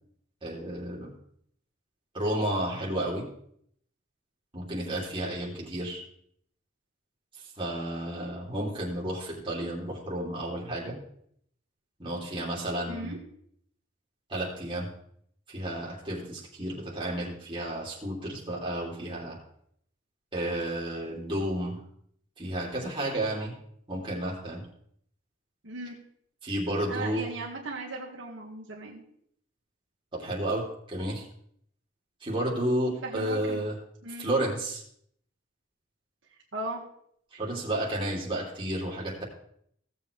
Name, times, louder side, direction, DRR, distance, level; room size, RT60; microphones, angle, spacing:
voice 1, 0.4-1.1 2.1-3.3 4.5-6.0 7.6-11.0 12.0-13.1 14.3-14.9 15.5-19.4 20.3-21.8 22.4-23.5 23.9-24.6 26.4-27.3 30.1-31.2 32.2-33.7 34.2-34.8 37.3-39.2, right 1 dB, 25° right, -4 dB, 2.9 m, -31 dB
voice 2, 12.9-13.2 25.6-26.0 26.9-29.0 33.0-33.6 34.0-34.3 36.5-36.8, right 2 dB, 70° right, -2 dB, 1.7 m, -37 dB
16.5 x 7.5 x 3.3 m, 0.68 s
head